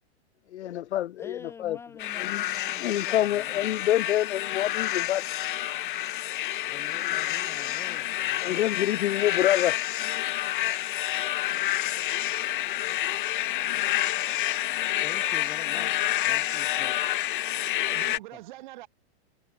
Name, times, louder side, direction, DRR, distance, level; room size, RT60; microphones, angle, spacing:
voice 1, 0.5-1.8 2.2-2.4 2.8-5.2 8.4-9.8, left 13 dB, 85° left, 0.9 m, -27 dB
voice 2, 1.2-3.7 6.6-8.6 15.0-17.0 18.3-18.4, left 6 dB, 10° left, 0.9 m, -46 dB
sound 1, 2.0-18.2, left 15 dB, 50° left, 1.4 m, -29 dB
voice 3, 17.6-18.9, right 17 dB, 45° right, 4.6 m, -44 dB
supercardioid pair, 170°, 33 cm